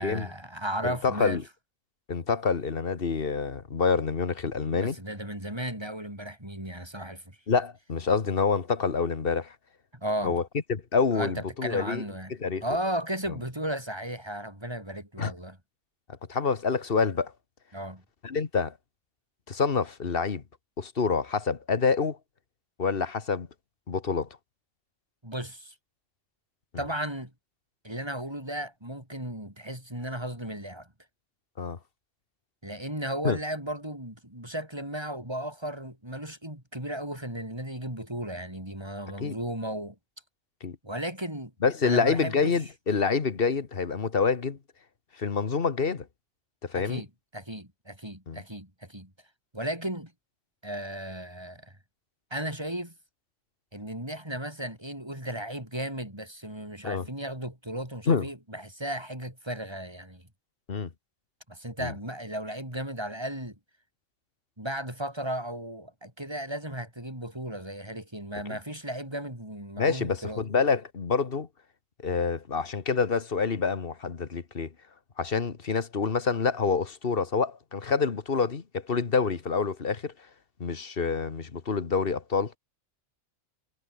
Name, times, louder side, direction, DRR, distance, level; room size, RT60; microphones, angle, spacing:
voice 1, 0.0-1.4 4.7-7.4 9.9-10.4 11.1-12.4 12.6-15.6 17.7-18.0 25.2-25.7 26.8-27.3 27.8-30.9 32.6-40.0 40.8-41.5 41.8-42.6 46.7-47.1 47.3-49.1 49.5-50.1 50.6-51.8 52.3-52.9 53.7-60.3 61.5-63.5 64.6-70.4, right 1 dB, 20° right, 6.8 m, -35 dB
voice 2, 0.8-1.4 2.1-5.0 7.5-9.5 10.2-10.4 10.7-12.0 12.4-12.6 15.2-15.3 16.3-17.3 18.2-18.7 19.5-20.4 20.8-22.2 22.8-23.5 23.9-24.3 31.6-31.8 33.2-33.4 39.2-39.4 40.6-40.8 41.6-44.6 45.2-46.1 46.6-47.0 48.3-48.4 56.8-57.0 58.1-58.3 60.7-60.9 61.8-61.9 68.5-68.6 69.8-71.5 72.0-74.7 75.2-80.1 80.6-82.5, left 5 dB, 45° left, 1.6 m, -27 dB
omnidirectional pair, 1.3 m